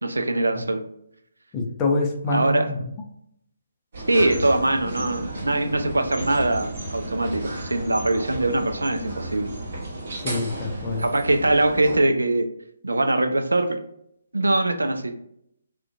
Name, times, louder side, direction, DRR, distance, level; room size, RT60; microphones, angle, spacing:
voice 1, 0.0-0.9 2.3-2.7 4.1-9.5 11.0-12.5 12.8-13.8 14.3-15.1, right 2 dB, 70° right, 7 dB, 0.3 m, -22 dB
voice 2, 1.5-2.8 10.2-11.0, left 2 dB, 20° left, 1 dB, 0.4 m, -25 dB
sound 1, 3.9-12.0, right 1 dB, 50° right, 0.8 m, -33 dB
2.4 x 2.1 x 2.4 m, 0.71 s
figure-of-eight pair, 140°, 0 cm